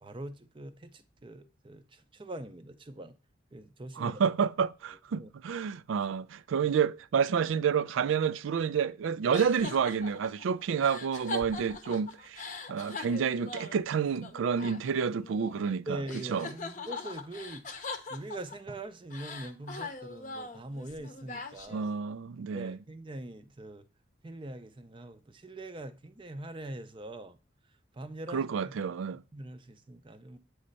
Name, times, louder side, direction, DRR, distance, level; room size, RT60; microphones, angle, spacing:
voice 1, 0.0-3.2 3.5-4.2 5.2-5.3 6.6-6.7 15.9-17.6 18.1-21.9 22.5-23.8 24.2-27.4 28.0-28.7 29.3-30.4, right 1 dB, 25° right, 0.5 m, -43 dB
voice 2, 4.0-12.4 12.7-16.0 16.3-16.5 21.7-22.8 28.3-29.2, right 6 dB, 85° right, 0.4 m, -29 dB
sound 1, 9.3-15.8 16.1-18.7 19.1-22.0, left 3 dB, 40° left, 0.7 m, -42 dB
8.5 x 3.2 x 4.0 m
head